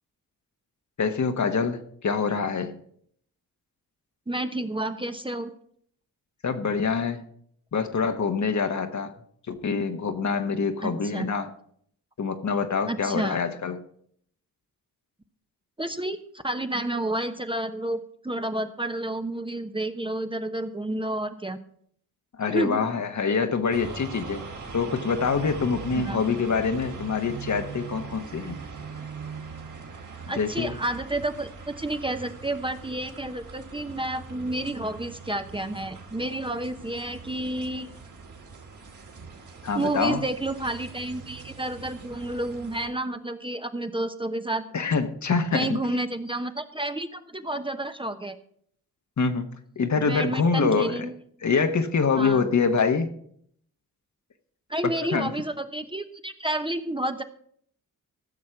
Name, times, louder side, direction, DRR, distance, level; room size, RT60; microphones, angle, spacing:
voice 1, 1.0-2.8 6.4-7.2 7.7-9.1 9.5-11.5 12.2-13.8 22.4-24.4 24.7-28.6 30.3-30.8 39.6-40.2 44.7-45.8 49.2-49.5 49.8-51.1 51.4-53.1 54.8-55.3, left 5 dB, 50° left, 7 dB, 1.4 m, -25 dB
voice 2, 4.3-5.5 10.8-11.3 12.9-13.4 15.8-18.0 18.2-21.6 22.4-22.8 26.0-26.2 30.3-31.5 31.8-37.9 39.7-44.6 45.5-48.4 50.0-51.1 52.1-52.5 54.7-57.2, right 1 dB, 15° right, 8 dB, 0.9 m, -30 dB
sound 1, 23.7-42.9, right 5 dB, 55° right, 2.4 m, -41 dB
15.0 x 6.3 x 5.8 m, 0.64 s
supercardioid pair, 50°, 37 cm